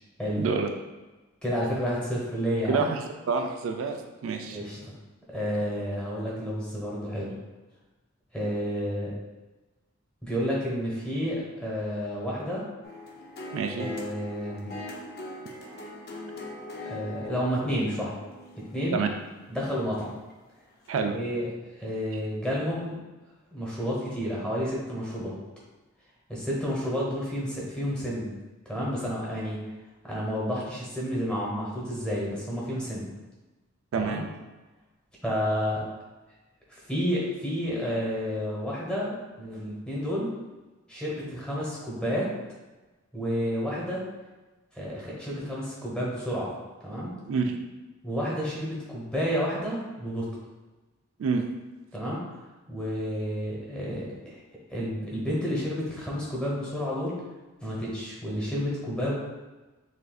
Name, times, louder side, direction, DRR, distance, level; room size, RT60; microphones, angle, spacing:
voice 1, 0.4-0.7 2.7-4.6 13.5-13.9 18.9-19.1 20.9-21.2 33.9-34.3 47.3-47.6 51.2-51.5, right 5 dB, 70° right, 5 dB, 0.3 m, -28 dB
voice 2, 1.4-2.8 4.5-4.9 5.3-7.4 8.3-9.1 10.2-12.6 13.8-14.7 16.8-18.1 18.7-19.0 19.5-20.2 21.1-21.5 21.7-22.9 23.5-25.4 26.3-28.3 28.6-29.6 30.0-33.1 34.0-34.2 35.2-35.8 36.7-40.3 40.9-42.3 43.1-44.0 44.7-46.5 46.8-47.2 48.0-50.3 51.9-52.4 52.7-54.4 54.7-57.2 57.6-59.1, equal, 5° left, -6 dB, 1.0 m, -30 dB
sound 1, 12.8-20.3 20.9-21.0, left 2 dB, 45° left, 0.6 m, -41 dB
6.3 x 2.6 x 2.3 m, 1.2 s
head